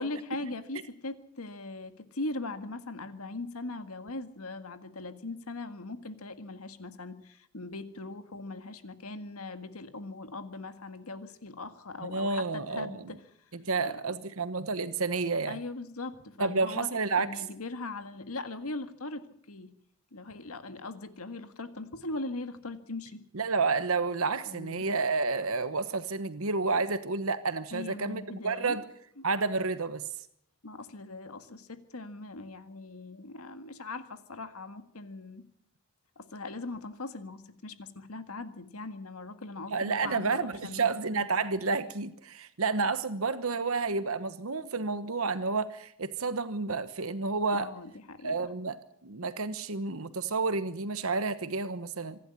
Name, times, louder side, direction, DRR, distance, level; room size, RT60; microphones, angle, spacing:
voice 1, 0.0-13.2 13.7-14.2 15.5-16.9 17.2-19.7 20.1-23.2 24.4-24.9 27.7-28.8 29.2-29.3 30.6-35.4 36.2-40.9 47.5-48.4, left 2 dB, 80° left, 10 dB, 1.8 m, -40 dB
voice 2, 12.0-13.0 13.5-15.6 16.4-17.4 23.3-28.8 29.2-30.0 39.7-47.7 48.2-52.2, right 4 dB, 75° right, 12 dB, 1.2 m, -30 dB
26.0 x 11.5 x 9.8 m, 0.68 s
head